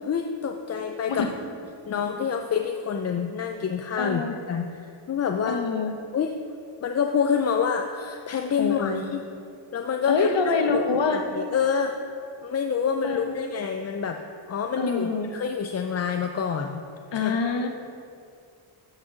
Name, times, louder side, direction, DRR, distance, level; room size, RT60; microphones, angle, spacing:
voice 1, 0.1-1.3 1.9-5.6 6.1-6.3 6.8-9.2 9.7-10.3 10.7-10.8 11.1-12.0 12.4-14.2 14.5-16.8 17.1-17.3, left 6 dB, 35° left, 4 dB, 0.4 m, -27 dB
voice 2, 4.0-4.3 5.5-5.9 8.6-9.0 10.1-11.2 13.0-13.2 14.8-15.3 17.1-17.7, left 4 dB, 60° left, 5 dB, 1.0 m, -25 dB
8.7 x 6.0 x 6.2 m, 2.4 s
wide cardioid pair, 115°, 49 cm